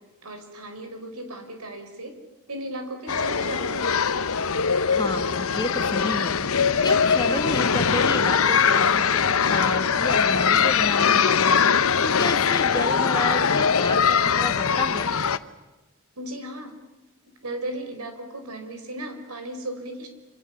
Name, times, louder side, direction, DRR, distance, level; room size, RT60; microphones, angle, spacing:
voice 1, 0.0-2.1 2.5-4.3 16.2-16.7 17.4-20.1, right 1 dB, 85° right, 6 dB, 4.8 m, -36 dB
sound 1, 3.1-15.4, left 6 dB, 70° left, 0.9 m, -21 dB
voice 2, 4.9-6.4 6.8-11.6 12.0-15.1, left 2 dB, 20° left, 6 dB, 1.8 m, -31 dB
sound 2, 5.7-13.9, left 2 dB, 5° right, 4.0 m, -47 dB
27.0 x 27.0 x 7.1 m, 1.1 s
head